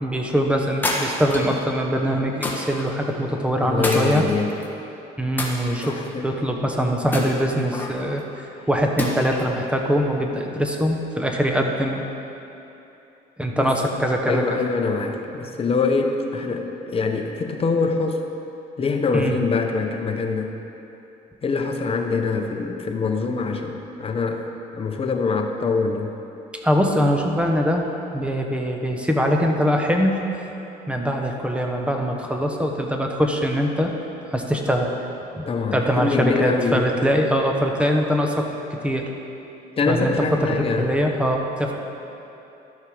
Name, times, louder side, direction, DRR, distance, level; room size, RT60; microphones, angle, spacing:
voice 1, 0.0-4.2 5.2-12.0 13.4-14.6 19.1-19.3 26.6-27.9 28.1-30.4 30.9-33.9 34.3-34.9 35.3-38.5 38.8-39.0 39.9-40.1 40.4-41.7, equal, 5° right, 2 dB, 1.0 m, -22 dB
sound 1, 0.8-1.6 2.4-2.9 3.8-4.7 5.4-6.1 7.1-8.0 9.0-9.5, left 1 dB, 10° left, 1.3 m, -28 dB
voice 2, 3.6-4.5 5.8-6.3 13.6-13.7 14.3-18.2 18.8-20.5 21.4-26.1 35.5-36.9 39.8-40.9, left 4 dB, 35° left, 4 dB, 0.9 m, -24 dB
12.5 x 6.5 x 5.0 m, 2.9 s
cardioid pair, 110°, 17 cm